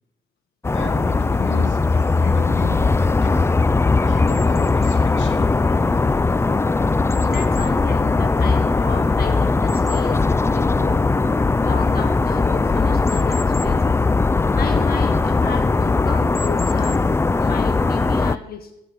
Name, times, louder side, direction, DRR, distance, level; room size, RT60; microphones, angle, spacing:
sound 1, 0.6-18.4, left 3 dB, 15° left, 0.4 m, -19 dB
voice 1, 0.7-3.6 4.0-5.5, left 4 dB, 70° left, 2.1 m, -33 dB
voice 2, 7.2-11.0 11.6-13.8 14.5-17.1 17.4-18.7, left 5 dB, 50° left, 1.4 m, -33 dB
14.5 x 6.0 x 8.7 m
cardioid pair, 90°, 20 cm